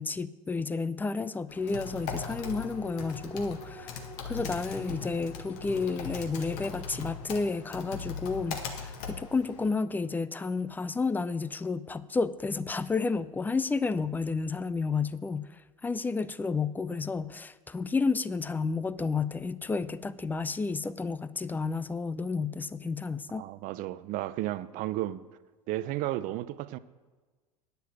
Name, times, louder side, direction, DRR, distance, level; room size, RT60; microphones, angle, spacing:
voice 1, 0.0-4.0 4.2-15.5 15.8-23.5, left 4 dB, 10° left, 0.4 m, -31 dB
sound 1, 1.1-11.9 12.3-12.4, right 1 dB, 30° left, 4.1 m, -52 dB
Typing, 1.5-9.7, left 5 dB, 60° left, 1.8 m, -40 dB
voice 2, 23.4-25.3 25.7-26.8, right 15 dB, 50° right, 0.6 m, -33 dB
9.9 x 6.8 x 8.2 m
hypercardioid pair, 85°, 18 cm